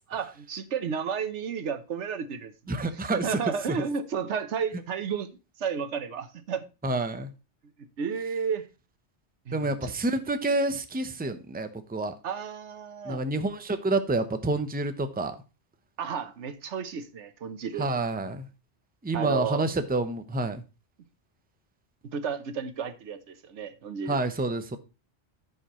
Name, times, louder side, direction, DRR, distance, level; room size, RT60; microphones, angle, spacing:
voice 1, 0.1-2.8 3.2-5.3 5.6-6.7 8.0-8.7 9.5-9.9 11.2-11.3 12.2-13.2 16.0-17.9 19.1-19.7 22.1-24.2, right 6 dB, 90° right, 1.2 m, -32 dB
voice 2, 2.7-3.4 3.7-3.8 6.8-7.3 9.5-12.1 13.0-15.4 17.8-18.5 19.0-20.6 24.1-24.8, right 2 dB, 10° right, 0.6 m, -28 dB
14.0 x 5.4 x 3.0 m
omnidirectional pair, 1.1 m